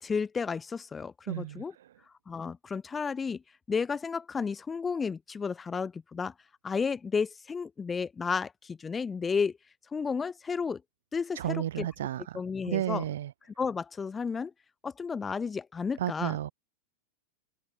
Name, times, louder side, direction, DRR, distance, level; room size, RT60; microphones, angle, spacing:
voice 1, 0.0-1.7 2.3-3.4 3.7-6.3 6.6-9.6 9.9-10.8 11.1-11.9 12.3-13.0 13.6-14.5 14.8-16.4, left 5 dB, 15° left, 0.3 m, -32 dB
voice 2, 1.3-1.9 11.3-12.4 12.7-13.3 16.0-16.5, right 12 dB, 60° right, 0.5 m, -32 dB
figure-of-eight pair, 90°, 0 cm